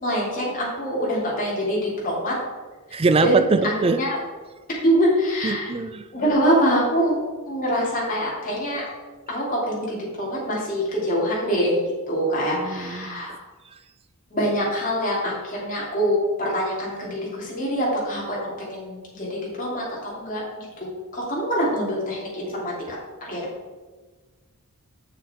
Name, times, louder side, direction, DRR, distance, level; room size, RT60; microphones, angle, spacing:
voice 1, 0.0-2.4 2.9-4.2 4.7-5.7 6.1-7.2 7.5-8.8 9.3-11.8 12.1-13.4 14.3-23.0 23.2-23.5, equal, 35° left, -5 dB, 2.7 m, -25 dB
voice 2, 2.9-4.0 5.4-6.1 12.5-13.4, right 3 dB, 25° right, 11 dB, 0.3 m, -23 dB
7.3 x 6.3 x 4.3 m, 1.3 s
head